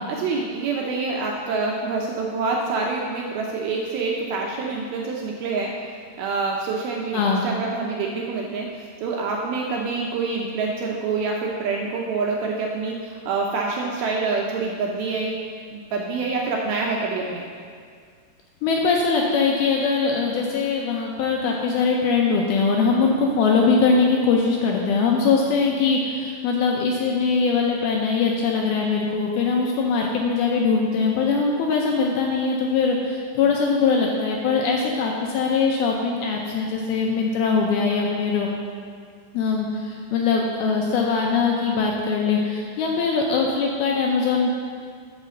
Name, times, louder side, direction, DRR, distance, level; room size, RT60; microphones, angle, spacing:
voice 1, 0.1-5.9 6.2-15.4 15.7-17.5, right 4 dB, 80° right, -1 dB, 2.3 m, -26 dB
voice 2, 7.1-7.5 18.6-38.5 39.3-44.5, left 4 dB, 80° left, 0 dB, 2.3 m, -21 dB
9.7 x 5.0 x 6.9 m, 2.1 s
omnidirectional pair, 5.0 m